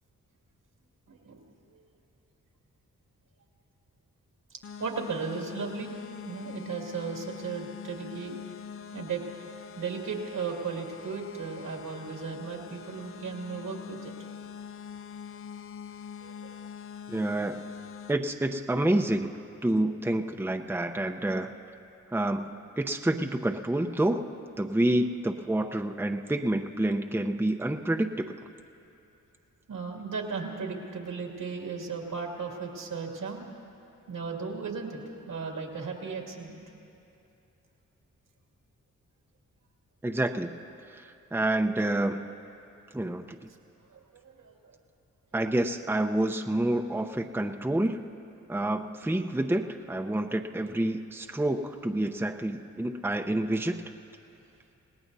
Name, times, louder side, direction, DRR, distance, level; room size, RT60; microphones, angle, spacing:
voice 1, 1.1-1.4 4.8-5.9 6.2-8.6 8.9-9.2 9.8-14.1 16.2-16.6 29.7-33.4 34.1-36.6 43.9-44.7, right 5 dB, 75° right, 1 dB, 2.4 m, -36 dB
sound 1, 4.6-18.1, left 7 dB, 45° left, 0.5 m, -44 dB
voice 2, 17.1-17.6 18.1-19.3 19.6-21.5 22.1-22.4 22.8-24.2 24.6-28.3 40.0-40.5 40.9-42.2 42.9-43.4 45.3-48.0 48.5-53.8, right 1 dB, 5° right, 4 dB, 0.8 m, -28 dB
28.5 x 18.0 x 2.8 m, 2.7 s
supercardioid pair, 45°, 32 cm